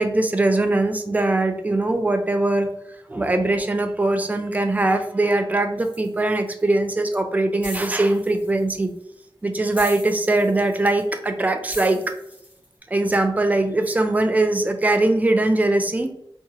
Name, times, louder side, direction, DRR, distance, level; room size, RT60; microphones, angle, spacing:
voice 1, 0.0-2.7 3.1-8.9 9.4-12.0 12.9-16.1, right 2 dB, 15° right, 6 dB, 0.3 m, -21 dB
sound 1, 5.8-6.7 7.6-9.0 9.8-11.3 11.7-12.6, left 1 dB, 65° left, 1.0 m, -39 dB
2.7 x 2.2 x 2.9 m, 0.76 s
wide cardioid pair, 85°, 9 cm